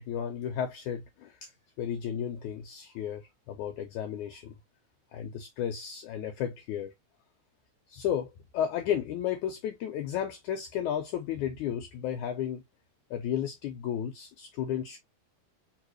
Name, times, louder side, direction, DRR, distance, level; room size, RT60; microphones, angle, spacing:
voice 1, 0.0-1.5 1.8-4.5 5.1-6.9 7.9-12.6 13.1-15.0, left 9 dB, 70° left, 2.2 m, -33 dB
4.9 x 3.1 x 3.1 m
omnidirectional pair, 3.9 m